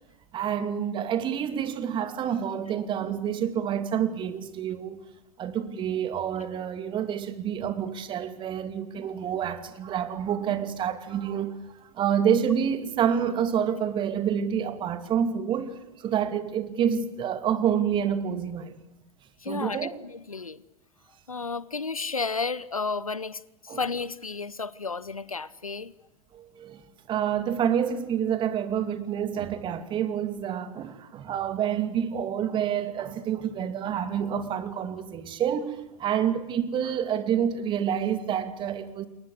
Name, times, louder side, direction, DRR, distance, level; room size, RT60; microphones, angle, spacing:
voice 1, 0.3-5.0 5.4-18.7 19.5-19.9 23.7-23.8 26.3-26.8 27.1-39.1, right 8 dB, 25° right, 2.5 m, -28 dB
voice 2, 19.4-20.6 21.3-25.9, left 4 dB, 80° left, 1.0 m, -32 dB
29.0 x 22.5 x 8.1 m
figure-of-eight pair, 95°, 18 cm